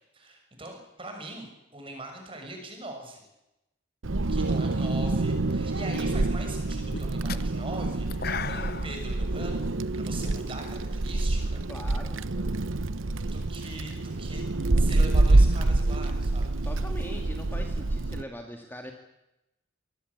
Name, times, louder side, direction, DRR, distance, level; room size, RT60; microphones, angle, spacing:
voice 1, 0.1-3.2 4.3-9.6 9.9-11.6 13.2-14.4 14.8-16.6, right 2 dB, 25° right, 3 dB, 6.6 m, -41 dB
Wind, 4.0-18.2, right 2 dB, 85° right, 1.0 m, -26 dB
sound 1, 5.3-5.6 5.9-10.9, left 6 dB, 50° left, 0.9 m, -39 dB
voice 2, 11.7-12.2 16.6-18.9, equal, 10° left, 3 dB, 2.0 m, -41 dB
25.0 x 19.0 x 8.4 m, 0.92 s
head